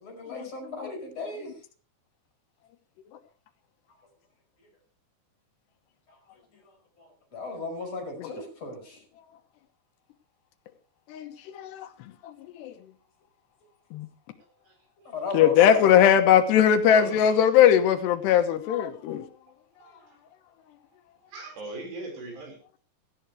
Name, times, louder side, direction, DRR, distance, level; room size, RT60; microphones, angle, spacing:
voice 1, 0.0-1.6 6.1-9.0 15.0-15.9, left 3 dB, 40° left, 5.5 m, -36 dB
voice 2, 11.1-11.9 12.2-12.3 12.6-12.7 13.9-14.1 15.3-19.2, left 9 dB, 80° left, 3.3 m, -20 dB
voice 3, 16.9-17.4 19.8-20.2 21.3-22.8, right 2 dB, 75° right, 7.0 m, -39 dB
17.5 x 15.0 x 3.3 m
omnidirectional pair, 4.9 m